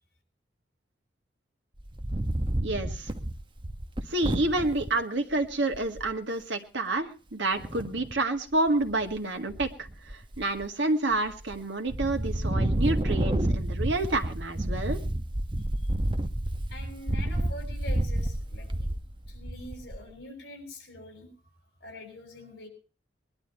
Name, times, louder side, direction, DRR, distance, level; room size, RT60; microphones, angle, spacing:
Wind, 1.8-4.9 5.4-5.5 5.7-6.1 7.6-8.2 8.7-9.2 9.5-10.7 11.1-11.6 11.9-20.1, right 1 dB, 25° right, 1.0 m, -30 dB
voice 1, 2.6-3.1 4.1-15.0, right 2 dB, 70° right, 5 dB, 1.9 m, -29 dB
voice 2, 16.7-18.9 19.3-21.5 21.8-22.7, left 1 dB, 55° left, 4 dB, 6.8 m, -44 dB
20.5 x 11.5 x 4.5 m, 0.35 s
head